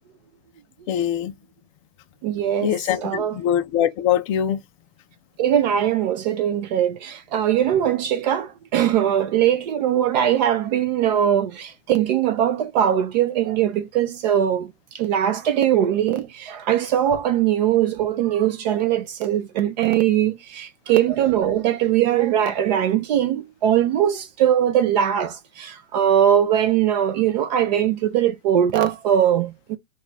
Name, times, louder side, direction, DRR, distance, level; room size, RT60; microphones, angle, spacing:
voice 1, 0.9-1.3 2.6-4.6, left 10 dB, 25° left, 0.4 m, -22 dB
voice 2, 2.2-2.8 3.0-3.4 5.4-14.7 14.9-29.8, right 10 dB, 35° right, 0.4 m, -21 dB
3.0 x 2.4 x 3.8 m
hypercardioid pair, 130°, 38 cm